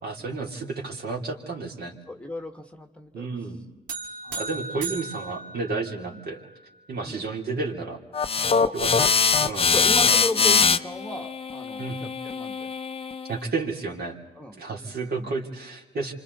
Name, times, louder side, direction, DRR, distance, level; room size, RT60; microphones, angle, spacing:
voice 1, 0.0-1.9 3.1-3.6 4.4-6.4 6.9-8.0 8.7-9.7 11.8-12.0 13.3-14.2 14.5-16.1, right 3 dB, 55° right, 1 dB, 3.7 m, -31 dB
voice 2, 2.1-3.2 4.2-4.4 4.8-4.9 7.0-7.3 8.5-8.7 9.7-12.7 14.4-15.4, left 1 dB, 5° left, 6 dB, 1.5 m, -35 dB
sound 1, 3.9-6.4, right 3 dB, 75° right, 2.7 m, -36 dB
sound 2, 8.1-13.3, left 5 dB, 30° left, 0.8 m, -22 dB
28.0 x 26.0 x 4.2 m, 1.2 s
cardioid pair, 90°, 20 cm